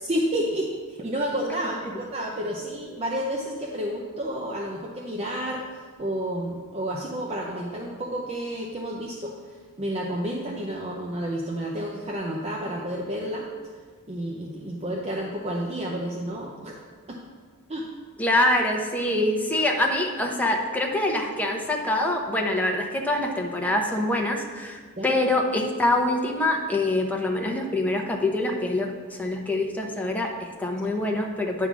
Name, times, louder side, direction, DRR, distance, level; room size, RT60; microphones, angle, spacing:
voice 1, 0.0-13.5 14.1-17.2 17.7-17.9 25.0-25.2, equal, 30° right, -1 dB, 0.6 m, -30 dB
voice 2, 18.2-28.9 29.2-31.7, left 1 dB, 5° left, 1 dB, 0.8 m, -25 dB
9.6 x 3.7 x 6.1 m, 1.5 s
head